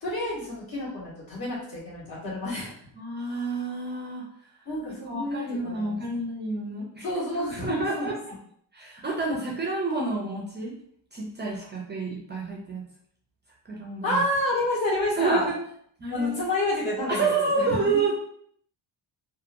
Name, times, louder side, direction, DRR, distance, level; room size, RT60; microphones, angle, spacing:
voice 1, 0.0-2.7 4.6-6.0 7.0-8.0 14.0-15.5 16.1-17.3 17.7-18.0, left 1 dB, 50° left, -6 dB, 1.4 m, -29 dB
voice 2, 3.0-4.2 5.0-7.1 7.5-8.2 8.7-10.7 11.1-12.8 13.7-14.2 15.2-15.6 16.0-16.3 17.1-18.1, right 3 dB, 25° right, -3 dB, 0.3 m, -29 dB
2.8 x 2.4 x 2.5 m, 0.65 s
wide cardioid pair, 175°, 45 cm